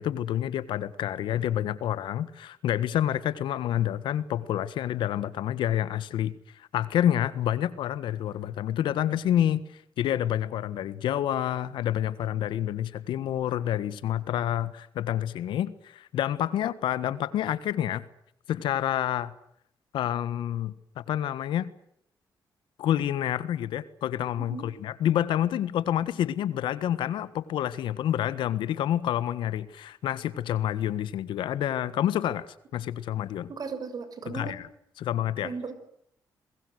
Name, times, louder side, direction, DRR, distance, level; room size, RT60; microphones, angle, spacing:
voice 1, 0.0-9.6 10.0-18.0 18.5-19.3 19.9-21.7 22.8-32.5 32.7-33.5 34.3-34.6 35.0-35.5, left 11 dB, 90° left, 1.5 m, -28 dB
voice 2, 33.5-34.5 35.4-35.7, right 5 dB, 50° right, 6.2 m, -36 dB
28.5 x 21.5 x 8.0 m
cardioid pair, 95°, 8 cm